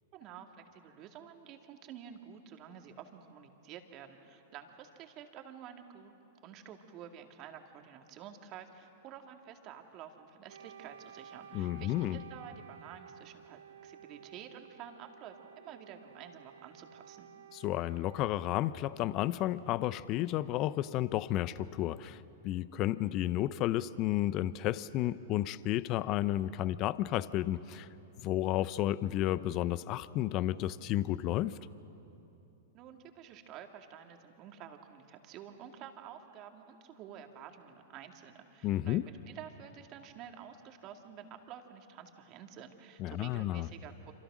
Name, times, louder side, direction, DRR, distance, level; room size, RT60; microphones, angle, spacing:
voice 1, 0.1-6.1 6.4-17.3 32.7-44.1, right 9 dB, 40° right, 4 dB, 2.4 m, -50 dB
Wind instrument woodwind instrument, 10.5-18.5, right 8 dB, 75° right, 1.1 m, -53 dB
voice 2, 11.5-12.2 17.5-27.9 28.2-31.6 38.6-39.1 43.0-43.7, left 14 dB, 40° left, 17 dB, 0.7 m, -32 dB
27.5 x 27.0 x 6.3 m, 2.9 s
hypercardioid pair, 105°, 0 cm